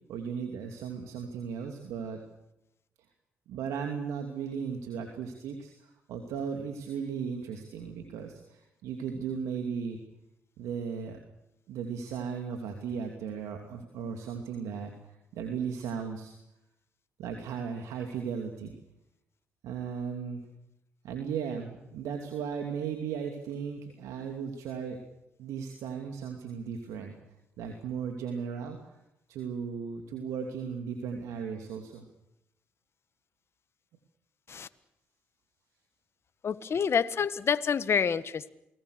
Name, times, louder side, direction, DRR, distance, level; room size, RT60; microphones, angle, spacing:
voice 1, 0.1-2.2 3.5-10.0 10.6-11.2 11.7-16.3 17.2-18.7 19.6-20.4 21.0-25.0 25.4-27.2 27.6-29.0 29.3-32.0, right 6 dB, 80° right, 4 dB, 2.6 m, -36 dB
voice 2, 36.4-38.5, left 6 dB, 50° left, 13 dB, 1.5 m, -28 dB
29.0 x 20.5 x 6.6 m, 0.84 s
supercardioid pair, 50°, 5 cm